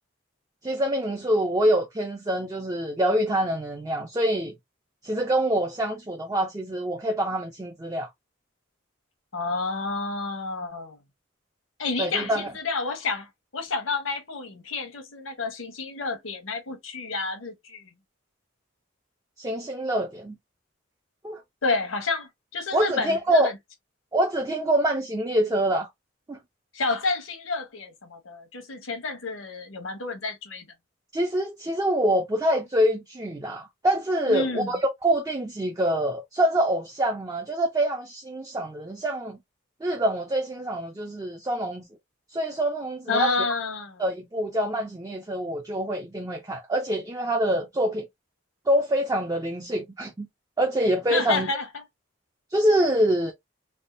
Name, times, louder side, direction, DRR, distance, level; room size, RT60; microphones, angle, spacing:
voice 1, 0.6-4.5 5.0-8.1 12.0-12.5 19.4-20.4 21.2-21.4 22.7-23.5 24.1-25.9 26.3-26.4 31.1-39.4 39.8-41.9 42.3-43.3 44.0-48.1 48.7-50.3 50.6-51.5 52.5-53.3, right 1 dB, 15° right, 0.4 m, -25 dB
voice 2, 9.3-11.0 11.8-13.3 13.5-17.9 21.6-23.5 26.7-30.6 34.3-34.7 43.1-44.0 51.1-51.8, left 3 dB, 85° left, 1.0 m, -30 dB
3.4 x 2.2 x 2.5 m
head